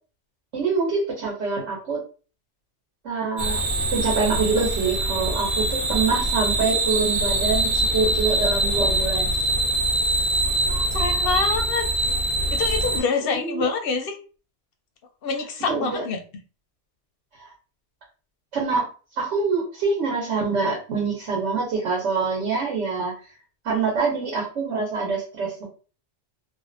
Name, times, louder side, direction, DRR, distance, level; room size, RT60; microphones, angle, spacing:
voice 1, 0.5-2.0 3.0-3.6 3.9-9.3 13.2-13.7 15.7-16.0 17.4-17.5 18.5-18.9 19.2-23.1 23.6-25.7, right 4 dB, 75° right, -2 dB, 1.2 m, -25 dB
sound 1, 3.4-13.0, right 2 dB, 50° right, 1.0 m, -23 dB
voice 2, 10.4-11.9 12.5-14.2 15.2-16.2, left 5 dB, 60° left, 5 dB, 0.7 m, -26 dB
2.5 x 2.4 x 2.5 m, 0.37 s
omnidirectional pair, 1.2 m